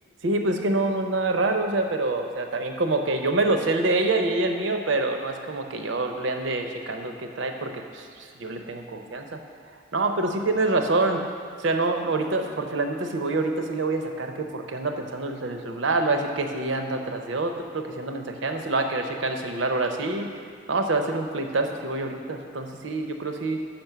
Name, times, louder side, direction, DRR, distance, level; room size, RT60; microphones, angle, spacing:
voice 1, 0.2-9.4 9.9-11.2 11.6-20.3 20.7-23.6, right 2 dB, 80° right, 5 dB, 0.7 m, -26 dB
5.9 x 5.4 x 6.7 m, 2.2 s
head